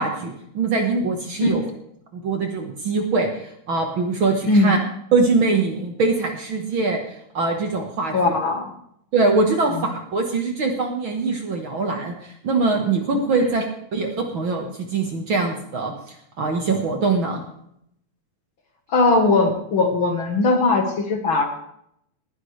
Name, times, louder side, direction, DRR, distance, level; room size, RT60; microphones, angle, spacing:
voice 1, 0.0-1.6 2.1-4.8 5.1-7.0 7.3-8.3 9.1-13.7 13.9-15.9 16.4-17.4, right 3 dB, 50° right, 3 dB, 1.9 m, -22 dB
voice 2, 4.5-4.8 8.1-8.7 13.4-13.5 18.9-21.4, left 3 dB, 50° left, 3 dB, 2.0 m, -19 dB
19.5 x 11.0 x 3.3 m, 0.73 s
omnidirectional pair, 3.4 m